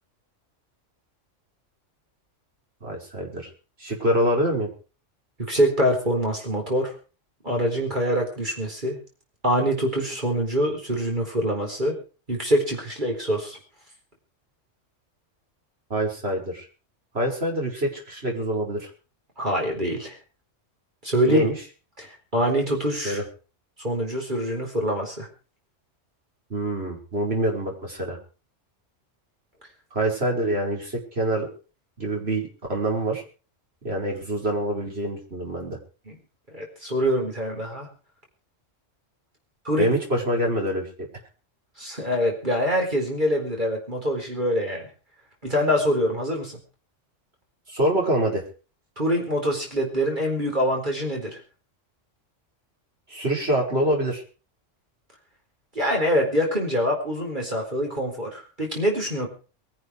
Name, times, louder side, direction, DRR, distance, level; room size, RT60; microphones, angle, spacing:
voice 1, 2.8-3.5 3.8-4.7 15.9-16.7 17.1-18.9 21.3-21.6 23.0-23.2 26.5-28.2 29.9-31.5 32.0-33.2 33.8-35.8 39.8-41.1 47.7-48.4 53.1-54.2, right 1 dB, 55° right, 0 dB, 5.6 m, -25 dB
voice 2, 5.4-6.9 7.4-9.0 9.4-12.0 12.3-13.6 19.4-20.2 21.0-21.5 22.0-23.2 23.8-25.3 36.1-36.2 36.5-37.9 39.6-40.0 41.8-44.9 45.4-46.6 49.0-51.4 55.7-59.3, equal, 40° right, 1 dB, 4.6 m, -25 dB
22.0 x 11.0 x 4.9 m, 0.37 s
omnidirectional pair, 1.3 m